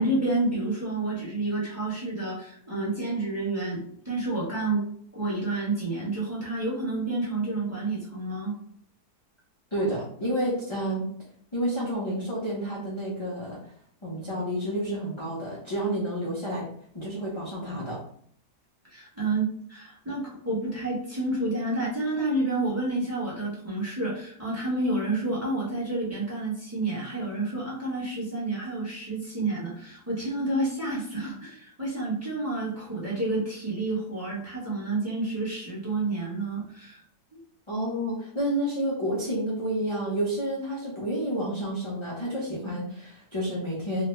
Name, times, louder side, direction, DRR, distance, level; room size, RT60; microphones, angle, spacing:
voice 1, 0.0-4.8 5.1-8.6 18.9-37.0, right 2 dB, 10° right, -6 dB, 1.0 m, -29 dB
voice 2, 9.7-11.1 11.5-13.6 14.0-16.7 16.9-18.0 37.7-44.0, right 1 dB, 30° left, -7 dB, 0.5 m, -30 dB
3.2 x 2.3 x 3.2 m, 0.63 s
omnidirectional pair, 1.7 m